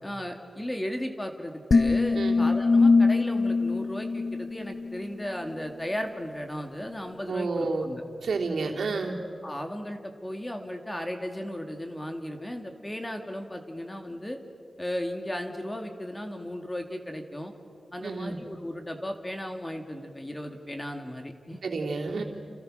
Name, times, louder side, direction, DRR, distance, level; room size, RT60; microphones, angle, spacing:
voice 1, 0.0-8.0 9.4-14.4 14.8-17.5 17.9-21.6, equal, 15° left, 4 dB, 2.4 m, -35 dB
sound 1, 1.7-5.0, left 3 dB, 50° left, 0.7 m, -22 dB
voice 2, 7.3-7.9 8.2-9.2 18.0-18.4 21.6-22.2, right 3 dB, 85° right, 0 dB, 3.4 m, -30 dB
30.0 x 29.5 x 6.5 m, 2.5 s
wide cardioid pair, 130°, 0 cm